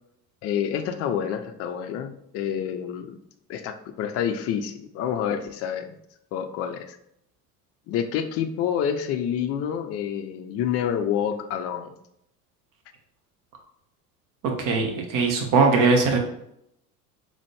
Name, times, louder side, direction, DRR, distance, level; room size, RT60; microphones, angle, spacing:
voice 1, 0.4-3.2 3.5-5.9 6.3-7.0 7.9-11.9, left 8 dB, 35° left, 8 dB, 0.4 m, -28 dB
voice 2, 14.4-16.2, right 4 dB, 45° right, 2 dB, 1.1 m, -20 dB
4.0 x 3.2 x 3.2 m, 0.76 s
figure-of-eight pair, 70°, 47 cm